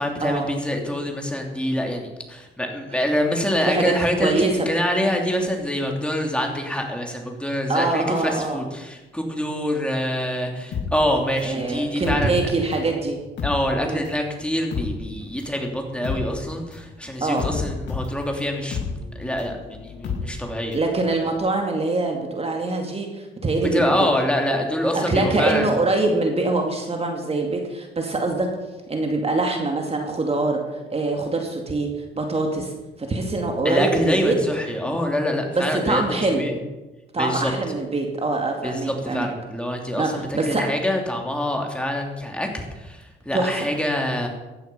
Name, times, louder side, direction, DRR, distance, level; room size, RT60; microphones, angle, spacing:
voice 1, 0.0-12.3 13.4-18.8 19.2-20.8 23.6-25.7 33.6-36.0 36.3-36.5 37.1-37.5 38.6-44.3, equal, 5° left, 1 dB, 3.2 m, -25 dB
voice 2, 3.6-3.9 4.2-4.7 7.7-8.6 11.4-13.2 13.8-14.0 17.2-17.5 20.7-24.0 24.9-28.5 28.9-31.9 32.1-32.7 33.0-34.4 34.9-35.0 35.6-36.4 37.1-39.3 39.9-40.6 43.3-43.7, right 2 dB, 30° right, 2 dB, 2.4 m, -24 dB
sound 1, 10.7-12.9 13.2-20.9 21.2-21.3, left 5 dB, 70° left, 5.7 m, -31 dB
15.5 x 11.5 x 5.6 m, 1.1 s
cardioid pair, 90°, 20 cm